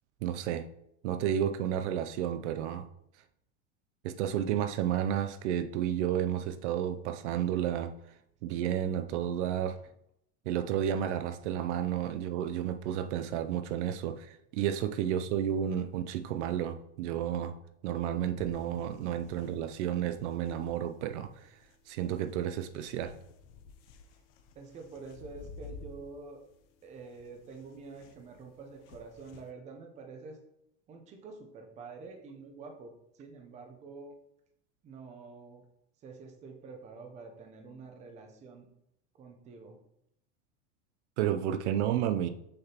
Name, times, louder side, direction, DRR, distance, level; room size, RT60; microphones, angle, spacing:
voice 1, 0.2-0.7 1.0-2.9 4.0-7.9 8.4-9.8 10.5-17.5 17.8-21.3 21.9-23.1 41.2-42.3, right 10 dB, 80° right, 9 dB, 0.6 m, -31 dB
sound 1, 18.4-29.5, left 4 dB, 55° left, 0.8 m, -54 dB
voice 2, 24.6-26.4 26.8-30.4 30.9-34.2 34.8-35.6 36.0-38.7 39.2-39.8, right 4 dB, 20° right, 3 dB, 0.7 m, -47 dB
6.5 x 5.9 x 2.9 m, 0.79 s
supercardioid pair, 165°, 34 cm